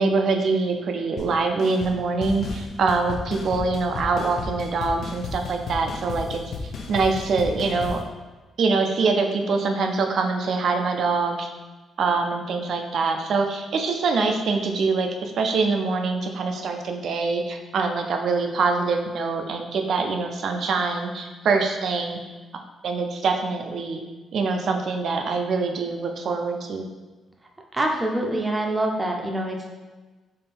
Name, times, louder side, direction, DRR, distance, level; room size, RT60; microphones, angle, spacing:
voice 1, 0.0-6.4 6.9-8.0 8.6-11.5 12.0-22.2 22.5-24.0 24.3-26.8, right 4 dB, 60° right, 4 dB, 0.5 m, -24 dB
sound 1, 1.2-1.3 1.6-1.9 2.2-8.0, left 4 dB, 55° left, 0.5 m, -34 dB
voice 2, 27.7-29.7, right 1 dB, 20° right, 1 dB, 0.6 m, -25 dB
3.7 x 3.2 x 4.2 m, 1.3 s
cardioid pair, 125°, 0 cm